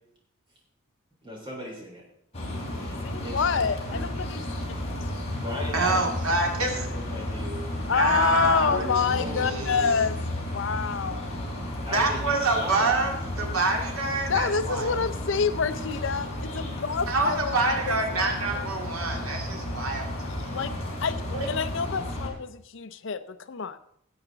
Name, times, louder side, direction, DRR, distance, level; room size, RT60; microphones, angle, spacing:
voice 1, 1.2-2.0 2.7-3.4 5.3-6.2 6.6-7.8 8.3-10.1 11.8-12.9, left 1 dB, 25° right, -3 dB, 4.4 m, -38 dB
sound 1, 2.3-22.3, left 1 dB, 30° left, 3.1 m, -33 dB
voice 2, 3.0-4.4 4.7-4.8 7.9-10.2 10.5-11.3 14.3-18.7 20.5-20.7 21.0-21.2 21.5-23.8, left 6 dB, 60° left, 12 dB, 0.5 m, -27 dB
voice 3, 5.7-6.9 7.9-9.8 11.9-15.0 17.1-20.6 21.3-21.5, right 3 dB, 90° right, 1 dB, 2.3 m, -27 dB
17.5 x 8.0 x 3.9 m, 0.71 s
head